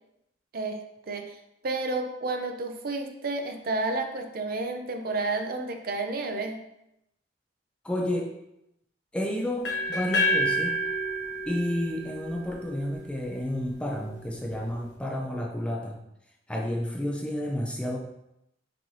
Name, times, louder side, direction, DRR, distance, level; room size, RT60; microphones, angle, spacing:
voice 1, 1.6-6.6, right 3 dB, 50° right, 5 dB, 0.5 m, -31 dB
voice 2, 7.8-8.3 9.1-10.7 11.4-16.0 16.5-18.0, left 1 dB, 5° left, -1 dB, 0.4 m, -31 dB
sound 1, 9.6-13.5, equal, 65° left, 1.0 m, -29 dB
5.9 x 2.7 x 3.2 m, 0.84 s
head